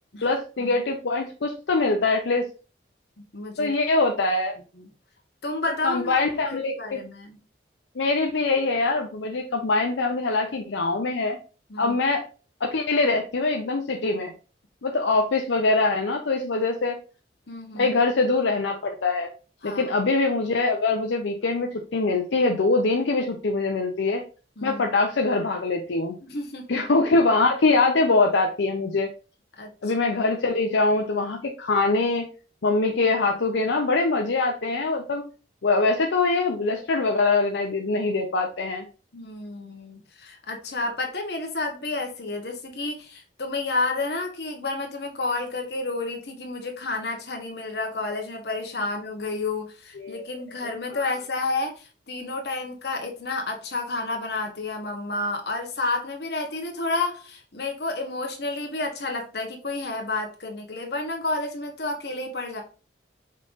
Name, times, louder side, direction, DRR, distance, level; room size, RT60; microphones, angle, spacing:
voice 1, 0.2-2.5 3.6-4.5 5.8-7.0 8.0-11.4 11.8-12.2 12.6-14.3 14.8-17.0 17.7-19.3 19.6-24.2 24.6-26.1 26.7-29.1 29.8-32.3 32.6-35.2 35.6-38.8 50.0-50.3 50.9-51.0, left 3 dB, 80° left, 3 dB, 0.6 m, -23 dB
voice 2, 3.3-3.7 4.8-4.9 5.4-6.2 6.4-7.4 11.7-12.0 17.5-18.0 19.6-19.9 24.6-24.8 26.2-26.7 29.6-29.7 39.1-62.6, left 2 dB, 60° left, 3 dB, 1.1 m, -30 dB
5.5 x 3.7 x 2.6 m, 0.35 s
head